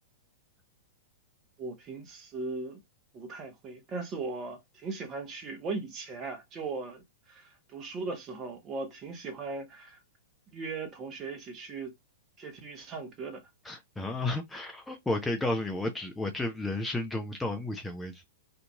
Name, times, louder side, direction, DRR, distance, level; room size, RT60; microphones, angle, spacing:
voice 1, 1.6-2.8 3.1-10.0 10.5-11.9 12.4-13.4, right 3 dB, 25° right, 1.0 m, -38 dB
voice 2, 13.6-18.3, left 2 dB, 5° left, 0.5 m, -32 dB
2.8 x 2.5 x 3.4 m
figure-of-eight pair, 100°, 0 cm